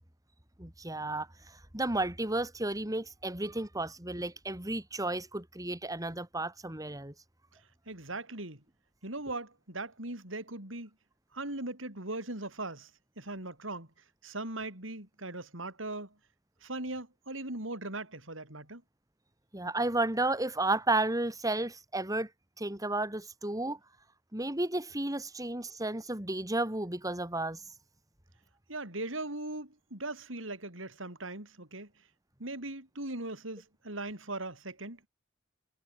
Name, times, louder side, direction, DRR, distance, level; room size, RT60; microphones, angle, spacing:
voice 1, 0.6-7.1 19.5-22.3 22.6-23.8 24.3-27.7, right 2 dB, 20° right, 3.1 m, -32 dB
voice 2, 7.9-8.6 9.0-10.9 11.3-12.9 13.2-13.9 14.2-16.1 16.6-18.8 28.7-31.9 32.4-35.0, right 2 dB, 80° right, 7.3 m, -39 dB
head